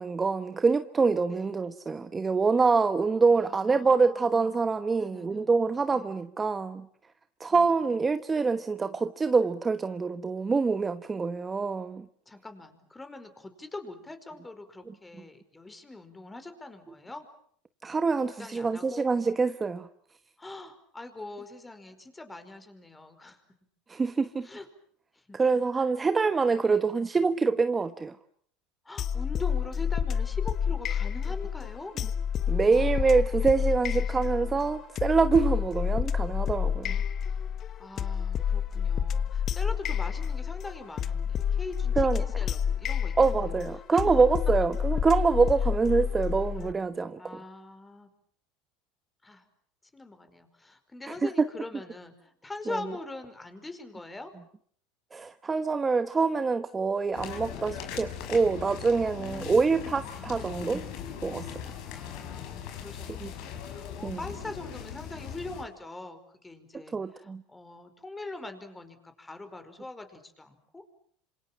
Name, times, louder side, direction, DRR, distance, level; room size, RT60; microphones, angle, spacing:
voice 1, 0.0-6.9 7.4-12.0 17.8-19.9 23.9-24.5 25.3-28.2 32.5-37.0 42.0-42.2 43.2-47.2 51.2-51.3 52.7-52.8 55.1-60.8 61.2-61.5 63.2-63.3 64.0-64.2 66.9-67.4, right 4 dB, 20° right, 1.1 m, -25 dB
voice 2, 1.3-1.6 3.3-4.4 5.0-5.5 5.9-6.1 7.5-7.7 12.3-17.3 18.2-19.1 20.4-23.4 24.4-24.7 25.1-25.4 26.6-27.0 28.8-32.0 32.6-34.7 37.8-43.2 43.9-44.0 47.2-48.1 49.2-49.4 49.9-54.3 59.2-60.7 61.8-70.8, left 2 dB, 15° left, 5.1 m, -43 dB
sound 1, 29.0-46.7, left 7 dB, 40° left, 1.5 m, -29 dB
sound 2, 57.1-65.6, left 9 dB, 65° left, 5.8 m, -40 dB
27.0 x 26.5 x 7.5 m
supercardioid pair, 110°, 0 cm